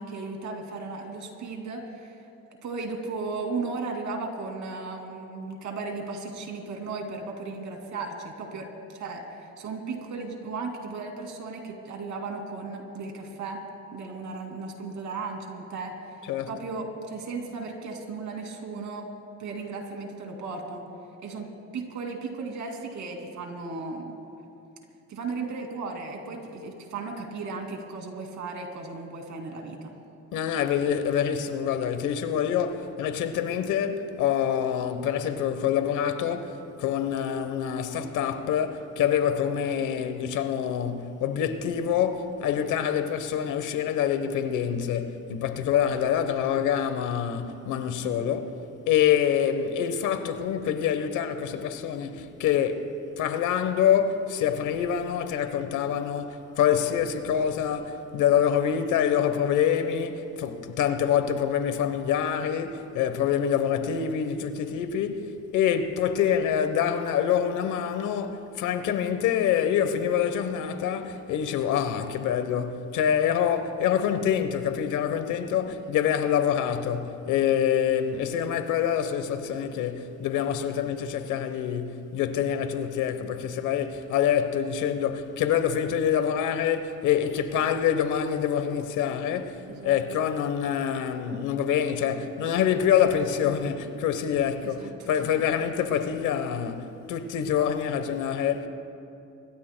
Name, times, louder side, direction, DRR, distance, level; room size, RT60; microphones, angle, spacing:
voice 1, 0.0-2.2 2.6-13.7 13.9-16.2 16.5-19.1 19.4-20.8 21.2-21.5 21.7-24.2 25.1-29.9 39.8-39.9 48.0-48.1 75.7-75.8 89.7-90.0 94.6-95.3, right 3 dB, 75° right, 2.6 m, -36 dB
voice 2, 30.3-48.6 48.9-98.7, left 9 dB, 90° left, 1.1 m, -26 dB
24.5 x 21.5 x 2.2 m
cardioid pair, 90°, 30 cm